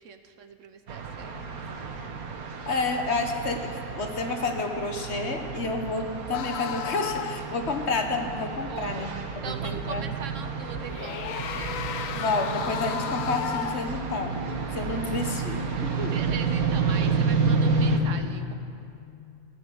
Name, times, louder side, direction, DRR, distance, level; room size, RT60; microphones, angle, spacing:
voice 1, 0.0-1.8 8.7-9.1 9.4-11.7 12.0-12.4 16.0-18.5, right 7 dB, 65° right, 9 dB, 1.0 m, -41 dB
sound 1, 0.9-18.0, right 4 dB, 80° right, 1.7 m, -30 dB
voice 2, 2.7-9.1 9.4-10.1 12.1-14.4 14.7-16.1, left 3 dB, 50° left, 5 dB, 1.3 m, -30 dB
sound 2, 6.3-7.5 10.6-14.0, left 9 dB, 70° left, 1.0 m, -34 dB
15.5 x 11.0 x 7.6 m, 2.6 s
omnidirectional pair, 1.5 m